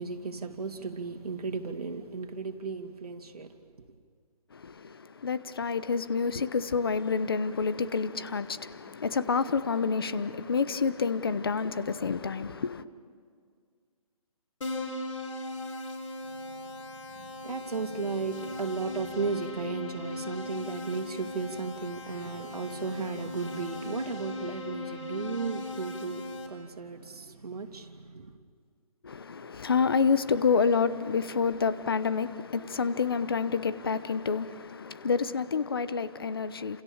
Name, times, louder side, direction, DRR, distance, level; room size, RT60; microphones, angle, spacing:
voice 1, 0.0-3.5 16.3-28.4, right 4 dB, 90° right, 2.9 m, -35 dB
voice 2, 4.5-12.8 29.0-36.8, left 5 dB, 40° left, 0.9 m, -28 dB
Keyboard (musical), 14.6-26.5, left 2 dB, 55° left, 4.5 m, -38 dB
30.0 x 27.5 x 7.3 m
hypercardioid pair, 175°, 19 cm